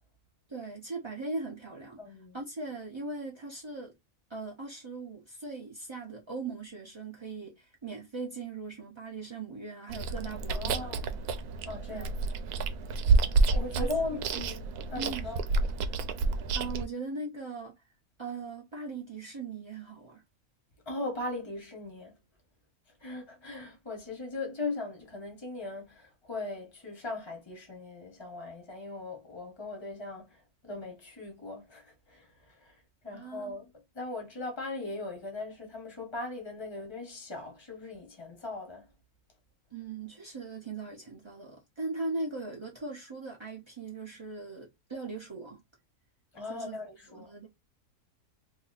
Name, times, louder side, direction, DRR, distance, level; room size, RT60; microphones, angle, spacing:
voice 1, 0.5-3.9 4.3-11.1 11.9-12.1 13.7-13.9 14.9-15.3 16.5-17.8 18.2-20.2 33.1-33.6 39.7-45.6 46.5-46.8 47.1-47.5, right 3 dB, 35° right, 0.4 m, -39 dB
voice 2, 2.0-2.4 10.5-11.1 11.6-12.1 13.5-14.6 14.9-15.4 20.9-22.2 23.0-38.9 46.3-47.3, left 2 dB, 20° left, 1.1 m, -39 dB
Chewing mastication, 9.9-16.9, right 3 dB, 80° right, 1.1 m, -29 dB
2.9 x 2.6 x 3.9 m
omnidirectional pair, 1.6 m